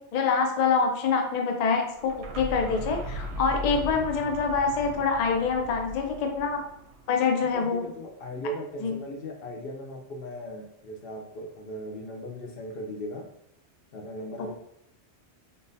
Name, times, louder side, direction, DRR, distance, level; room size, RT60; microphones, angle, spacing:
voice 1, 0.1-6.6 7.1-7.9 8.8-9.1 14.4-14.5, left 5 dB, 80° left, 3 dB, 0.3 m, -25 dB
sound 1, 1.9-7.7, right 1 dB, 65° right, 0.8 m, -38 dB
voice 2, 3.7-4.1 7.5-13.3 13.9-14.5, equal, 55° left, 2 dB, 0.8 m, -38 dB
3.8 x 2.6 x 2.6 m, 0.78 s
omnidirectional pair, 1.3 m